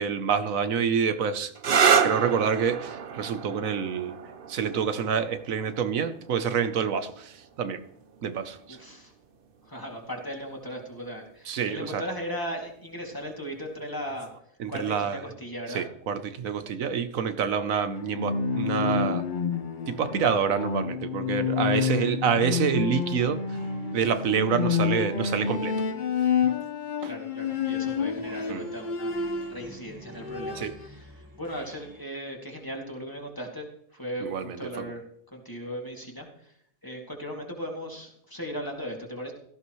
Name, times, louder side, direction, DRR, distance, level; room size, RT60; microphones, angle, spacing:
voice 1, 0.0-1.5 2.0-4.2 4.5-7.8 8.2-8.8 11.5-12.0 14.6-15.2 15.7-19.2 19.9-23.4 23.9-25.8 27.0-27.1 28.5-28.7 30.6-30.7 34.2-34.8, right 7 dB, 80° right, 1.3 m, -27 dB
sound 1, 1.5-9.0 10.0-10.5 14.0-14.4, right 7 dB, 45° right, 0.9 m, -29 dB
voice 2, 8.7-9.1 9.6-14.3 14.7-15.8 21.8-22.1 27.0-35.0 35.3-36.5 36.8-39.3, equal, 15° left, 2.5 m, -37 dB
Bowed string instrument, 18.0-29.7 30.1-30.9, left 6 dB, 40° left, 0.9 m, -29 dB
sound 2, 22.7-26.8 27.3-32.0, right 1 dB, 15° right, 1.4 m, -48 dB
17.5 x 14.0 x 3.1 m
omnidirectional pair, 1.4 m